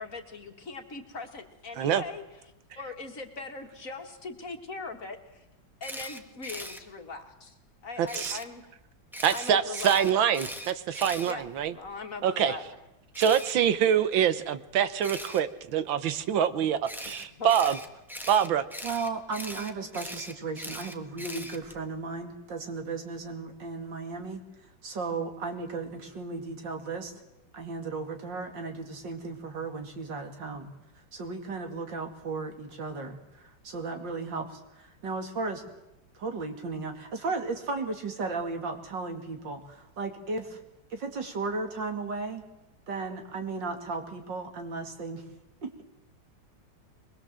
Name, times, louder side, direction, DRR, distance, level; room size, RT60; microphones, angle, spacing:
voice 1, 0.0-2.2 2.7-5.4 5.8-7.5 7.8-8.7 9.3-10.2 11.3-12.8 17.1-17.8, left 3 dB, 45° left, 5 dB, 2.2 m, -40 dB
Camera, 5.8-6.8 8.1-8.5 9.1-11.9 13.1-13.5 15.0-15.4 16.9-21.8, equal, ahead, 1.3 m, -40 dB
voice 2, 8.0-8.4 9.2-11.7 12.2-12.6 13.2-17.8 18.3-18.6, right 9 dB, 85° right, 13 dB, 1.7 m, -25 dB
voice 3, 18.8-24.4 24.8-27.1 27.5-30.7 31.1-35.6 36.1-40.6 40.9-42.4 42.9-45.2 45.6-45.8, right 3 dB, 70° right, 5 dB, 3.0 m, -35 dB
22.5 x 21.0 x 7.6 m, 0.92 s
omnidirectional pair, 2.1 m